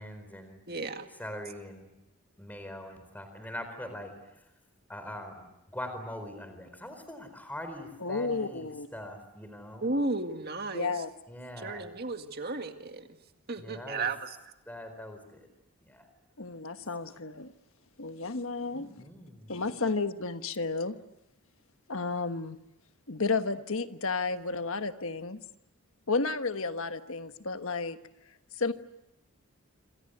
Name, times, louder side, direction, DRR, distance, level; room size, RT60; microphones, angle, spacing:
voice 1, 0.0-0.6 1.2-1.9 2.4-4.4 4.9-9.9 11.3-11.9 13.6-14.1 14.7-15.5 15.8-16.1 17.1-17.2 18.7-19.6, left 1 dB, 5° left, 8 dB, 4.3 m, -42 dB
voice 2, 0.7-1.1 9.8-10.9 11.6-13.1 13.5-14.3, right 3 dB, 45° right, 6 dB, 2.0 m, -33 dB
voice 3, 8.0-8.9 10.7-11.1 16.4-17.5 18.0-19.0 19.5-21.0 21.9-22.6 23.1-25.4 26.1-28.0 28.5-28.7, left 4 dB, 65° left, 9 dB, 1.4 m, -32 dB
27.0 x 26.5 x 8.0 m, 0.88 s
head